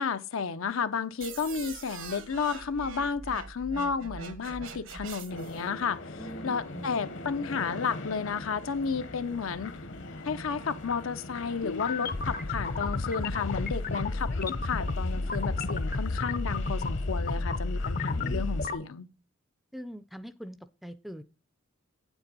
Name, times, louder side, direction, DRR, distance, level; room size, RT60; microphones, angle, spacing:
voice 1, 0.0-9.7 10.2-19.1, left 5 dB, 90° left, 0.6 m, -32 dB
sound 1, 1.2-5.6, right 5 dB, 70° right, 1.2 m, -43 dB
sound 2, 5.3-18.7, left 2 dB, 65° left, 1.0 m, -42 dB
voice 2, 6.2-6.9 18.1-18.4 19.7-21.2, equal, ahead, 0.4 m, -43 dB
sound 3, 11.6-18.7, left 3 dB, 45° left, 0.5 m, -31 dB
8.7 x 7.1 x 4.0 m
head